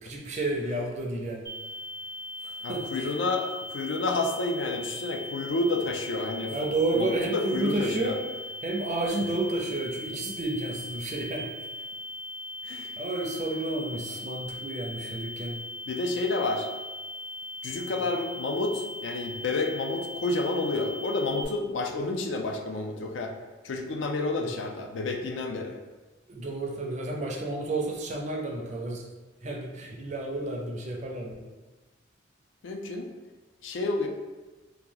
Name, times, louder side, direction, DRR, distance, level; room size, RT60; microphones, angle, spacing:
voice 1, 0.0-1.5 2.4-3.1 6.5-8.2 8.6-11.5 13.0-15.6 21.9-22.0 24.4-24.5 26.3-29.0 29.4-31.4, right 2 dB, 35° right, 0 dB, 0.5 m, -31 dB
sound 1, 1.4-21.4, left 1 dB, 20° left, 0.6 m, -39 dB
voice 2, 2.6-6.5 6.9-8.2 12.6-12.9 15.0-15.2 15.9-16.7 17.6-23.3 23.6-25.8 32.6-33.1 33.6-34.1, left 2 dB, 75° left, 3 dB, 0.4 m, -30 dB
2.9 x 2.2 x 3.7 m, 1.2 s
head